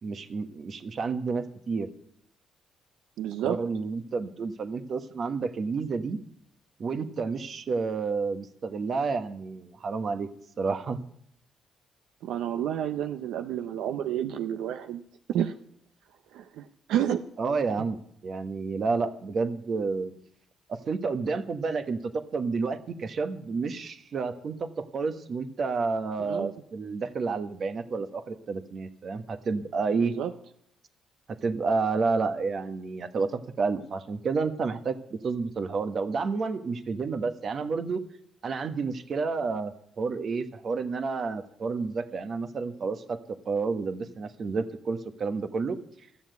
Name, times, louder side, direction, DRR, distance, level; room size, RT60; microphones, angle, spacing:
voice 1, 0.0-1.9 3.4-6.2 6.8-10.3 10.6-11.0 17.4-20.1 20.9-30.1 31.3-38.0 38.4-45.8, right 4 dB, 50° right, 9 dB, 1.2 m, -30 dB
voice 2, 3.2-3.6 12.2-15.0 15.3-15.5 16.3-17.2 26.2-26.5 29.9-30.3, right 10 dB, 90° right, 8 dB, 0.6 m, -30 dB
13.5 x 7.2 x 8.0 m, 0.71 s
cardioid pair, 90°, 0 cm